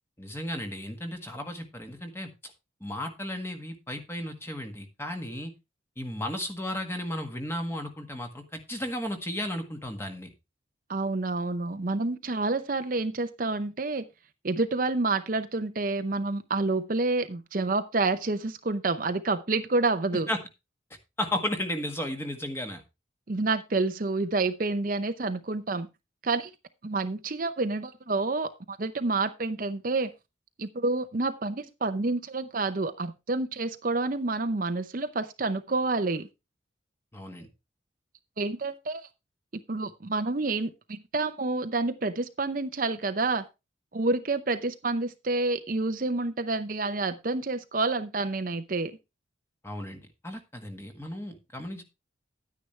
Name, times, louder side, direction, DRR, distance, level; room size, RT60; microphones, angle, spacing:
voice 1, 0.2-2.3 2.8-5.5 6.0-10.3 20.3-20.4 21.2-22.8 37.1-37.5 49.6-51.8, left 1 dB, 15° left, 5 dB, 1.6 m, -34 dB
voice 2, 10.9-14.1 14.4-20.3 23.3-25.9 26.2-26.5 26.8-30.1 30.6-36.3 38.4-39.1 39.7-43.5 43.9-49.0, right 3 dB, 45° right, 9 dB, 0.7 m, -28 dB
10.5 x 9.6 x 3.2 m, 0.25 s
head